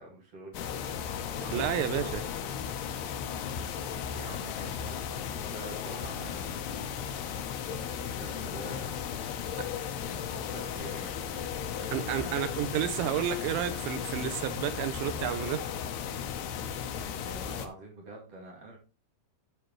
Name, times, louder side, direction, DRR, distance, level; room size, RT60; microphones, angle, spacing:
voice 1, 0.0-1.4 1.9-2.4 4.1-12.5 17.2-18.8, right 2 dB, 40° right, 2.7 m, -47 dB
sound 1, 0.5-17.7, left 8 dB, 75° left, 2.7 m, -35 dB
voice 2, 1.4-2.2 11.9-15.9, right 10 dB, 85° right, 3.0 m, -31 dB
14.0 x 5.1 x 3.1 m
omnidirectional pair, 5.1 m